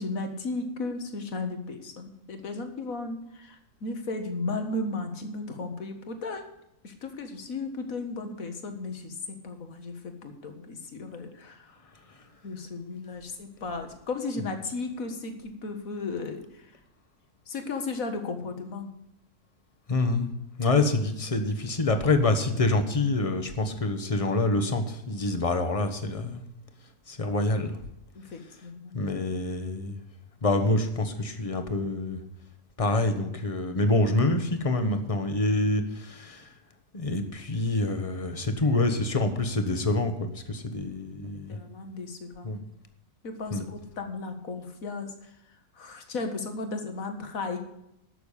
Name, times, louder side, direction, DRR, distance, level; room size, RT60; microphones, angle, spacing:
voice 1, 0.0-6.4 6.8-9.1 9.4-11.8 12.4-16.7 17.5-18.9 28.2-29.0 40.8-40.9 41.5-42.6 43.2-45.3 45.8-47.6, left 3 dB, 65° left, 6 dB, 2.0 m, -35 dB
voice 2, 19.9-20.3 20.6-26.4 27.1-27.8 28.9-29.9 30.4-32.2 32.8-36.5 36.9-41.6 42.4-42.6 43.5-43.7, left 2 dB, 25° left, 7 dB, 1.3 m, -26 dB
12.5 x 6.9 x 8.4 m, 0.83 s
omnidirectional pair, 1.6 m